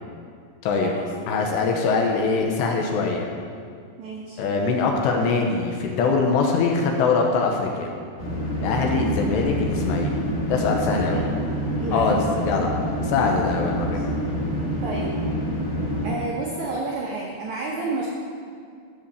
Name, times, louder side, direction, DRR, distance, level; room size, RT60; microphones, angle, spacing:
voice 1, 1.3-3.3 4.4-7.9 8.6-10.2 10.5-11.2 11.9-12.8 13.0-14.0, left 4 dB, 80° left, 1 dB, 2.9 m, -23 dB
voice 2, 4.0-4.4 10.9-11.3 11.8-12.2 13.9-14.0 14.8-15.1 16.0-18.1, right 3 dB, 85° right, -3 dB, 1.6 m, -30 dB
sound 1, 8.2-16.1, equal, 50° left, 4.9 m, -27 dB
14.5 x 5.0 x 6.9 m, 2.2 s
omnidirectional pair, 5.2 m